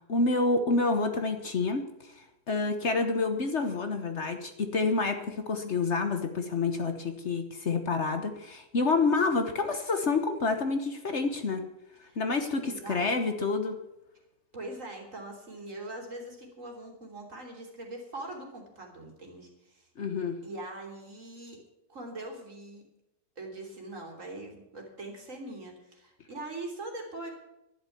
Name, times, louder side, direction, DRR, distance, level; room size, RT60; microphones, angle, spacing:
voice 1, 0.1-11.6 12.2-13.8 20.0-20.4, left 3 dB, 50° left, 7 dB, 1.3 m, -28 dB
voice 2, 12.7-13.2 14.5-19.9 20.4-21.6 21.9-22.8 23.4-27.3, right 2 dB, 55° right, 1 dB, 3.5 m, -42 dB
11.5 x 11.0 x 7.2 m, 0.91 s
omnidirectional pair, 1.6 m